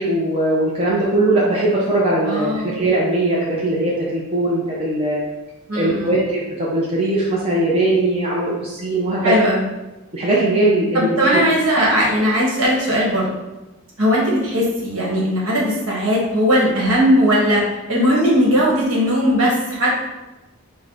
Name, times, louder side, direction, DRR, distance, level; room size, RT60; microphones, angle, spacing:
voice 1, 0.0-5.2 5.7-9.4 10.1-11.4, right 2 dB, 25° right, -6 dB, 0.6 m, -20 dB
voice 2, 2.3-2.8 5.7-6.1 9.2-9.6 10.9-13.4 14.0-17.6 17.9-20.0, equal, 65° right, -4 dB, 1.3 m, -18 dB
4.5 x 2.2 x 3.8 m, 1.0 s
head